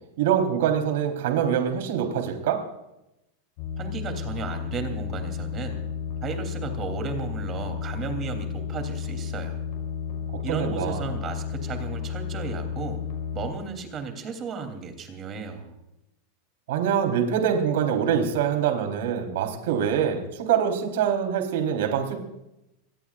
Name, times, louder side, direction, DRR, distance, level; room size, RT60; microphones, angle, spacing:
voice 1, 0.2-2.6 10.3-11.1 16.7-22.2, right 8 dB, 75° right, 4 dB, 3.9 m, -24 dB
sound 1, 3.6-13.5, left 8 dB, 50° left, 6.1 m, -32 dB
voice 2, 3.8-5.8 6.2-9.6 10.4-13.0 13.3-15.7, right 5 dB, 25° right, 6 dB, 3.2 m, -34 dB
27.5 x 18.5 x 2.5 m, 0.87 s
supercardioid pair, 160°, 0 cm